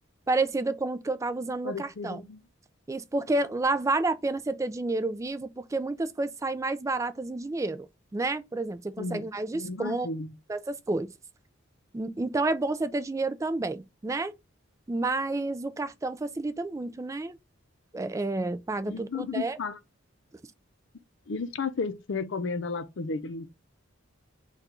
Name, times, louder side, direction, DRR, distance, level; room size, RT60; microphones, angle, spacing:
voice 1, 0.3-2.2 2.9-10.1 10.5-11.1 11.9-14.3 14.9-17.4 17.9-19.6, right 2 dB, 15° right, 0.3 m, -30 dB
voice 2, 1.6-2.4 9.0-9.3 9.5-10.3 18.9-19.8 21.3-23.5, left 4 dB, 60° left, 0.5 m, -33 dB
3.7 x 2.4 x 4.2 m
head